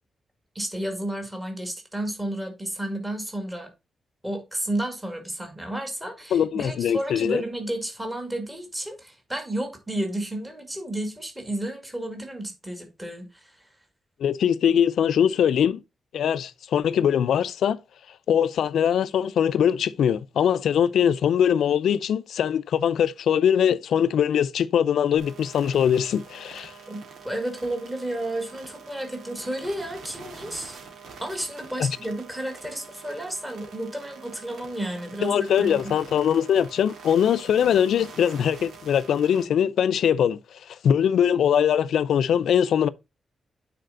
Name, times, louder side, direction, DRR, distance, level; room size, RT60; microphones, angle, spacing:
voice 1, 0.6-3.7 4.2-13.6 26.9-30.8 31.2-35.9, right 1 dB, 10° right, 1.9 m, -32 dB
voice 2, 6.3-7.4 14.2-15.8 16.1-17.8 18.3-26.7 31.8-31.9 35.2-40.4 40.7-42.9, left 8 dB, 85° left, 0.4 m, -22 dB
sound 1, 25.2-39.4, right 5 dB, 90° right, 2.2 m, -45 dB
9.2 x 4.2 x 3.8 m
wide cardioid pair, 160°, 0 cm